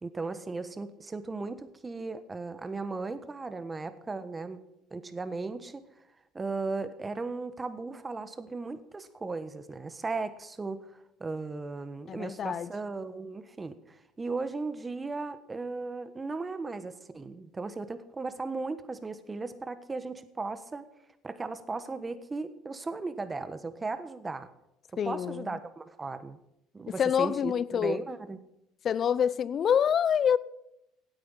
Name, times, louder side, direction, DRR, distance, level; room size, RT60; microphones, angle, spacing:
voice 1, 0.0-4.6 4.9-5.8 6.3-20.8 21.2-24.5 25.0-26.4 26.7-28.4, right 3 dB, 20° right, 1.3 m, -36 dB
voice 2, 12.1-12.7 25.0-25.6 27.0-28.0 28.8-30.4, left 8 dB, 45° left, 0.6 m, -26 dB
16.5 x 8.9 x 5.7 m
supercardioid pair, 90°, 0 cm